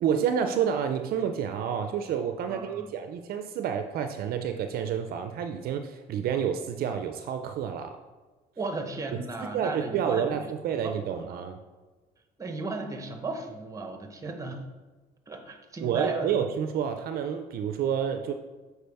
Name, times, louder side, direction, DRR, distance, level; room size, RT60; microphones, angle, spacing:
voice 1, 0.0-8.0 9.5-11.6 15.8-18.3, right 8 dB, 65° right, 7 dB, 0.4 m, -29 dB
voice 2, 2.5-2.9 8.6-10.5 10.8-11.4 12.4-14.6 15.3-16.3, right 3 dB, 20° right, 5 dB, 0.9 m, -35 dB
6.5 x 4.6 x 3.4 m, 1.3 s
cardioid pair, 110°, 17 cm